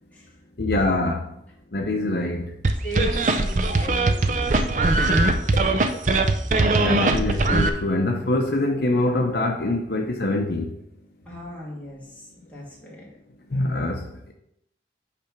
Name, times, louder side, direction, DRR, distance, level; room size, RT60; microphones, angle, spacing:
voice 1, 0.6-1.2 1.7-2.5 6.8-10.7 13.5-14.0, left 2 dB, 60° left, 2 dB, 0.7 m, -24 dB
sound 1, 2.6-7.7, right 2 dB, 45° right, 0.5 m, -20 dB
voice 2, 2.8-5.4 11.3-13.1, equal, 10° left, -6 dB, 2.3 m, -36 dB
8.6 x 3.4 x 5.9 m, 0.77 s
head